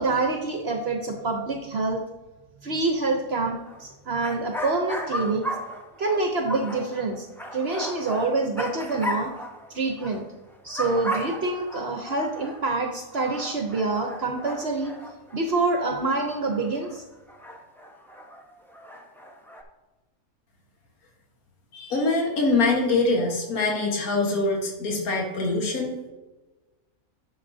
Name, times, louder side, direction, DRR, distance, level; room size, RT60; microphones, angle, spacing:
voice 1, 0.0-2.0 2.6-5.4 6.0-7.3 7.5-9.3 9.7-10.2 10.6-14.9 15.3-17.0, right 3 dB, 55° right, 4 dB, 0.9 m, -26 dB
sound 1, 3.6-3.8 4.1-10.2 10.5-12.6 13.1-17.0 17.3-19.6, equal, ahead, 0.7 m, -36 dB
voice 2, 21.7-25.9, left 3 dB, 75° left, 0 dB, 1.8 m, -24 dB
11.0 x 6.7 x 2.7 m, 1.1 s
omnidirectional pair, 1.5 m